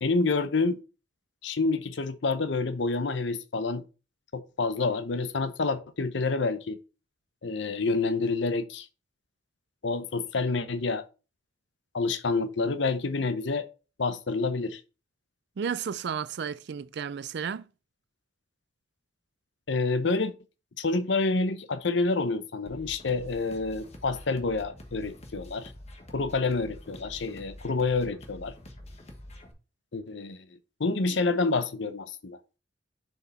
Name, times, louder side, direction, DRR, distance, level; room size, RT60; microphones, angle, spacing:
voice 1, 0.0-0.8 1.4-3.8 4.3-6.8 7.4-8.9 9.8-11.0 11.9-13.7 14.0-14.8 19.7-20.3 20.8-25.7 26.1-28.5 29.9-30.5 30.8-32.4, left 3 dB, 65° left, 0.7 m, -28 dB
voice 2, 15.6-17.6, right 7 dB, 60° right, 0.4 m, -33 dB
sound 1, 22.7-29.5, left 1 dB, 35° left, 1.1 m, -46 dB
6.4 x 4.8 x 4.2 m
head